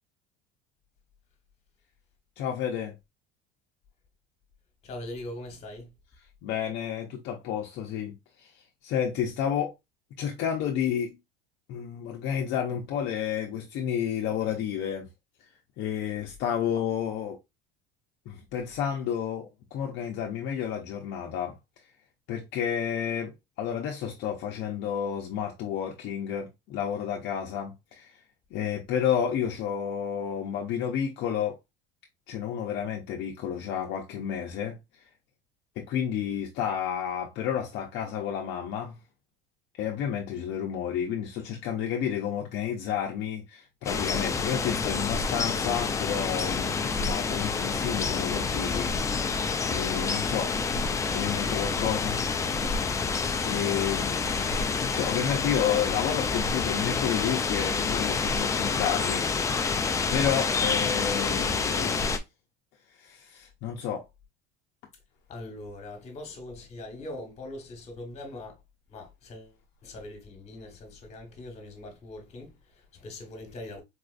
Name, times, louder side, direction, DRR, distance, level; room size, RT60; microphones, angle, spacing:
voice 1, 2.4-3.0 6.4-9.8 10.2-11.2 11.7-15.1 15.4-17.4 18.3-21.9 22.3-28.2 28.5-31.6 32.3-35.1 35.8-39.0 39.7-50.5 51.1-52.2 53.0-54.3 54.7-62.1 62.9-64.1, left 8 dB, 55° left, 0.6 m, -31 dB
voice 2, 4.8-5.9 65.3-68.6 68.9-69.5 69.8-73.8, left 1 dB, 30° left, 1.4 m, -41 dB
sound 1, 43.8-62.2, left 5 dB, 15° left, 0.3 m, -28 dB
4.2 x 2.4 x 2.4 m
cardioid pair, 130°, 21 cm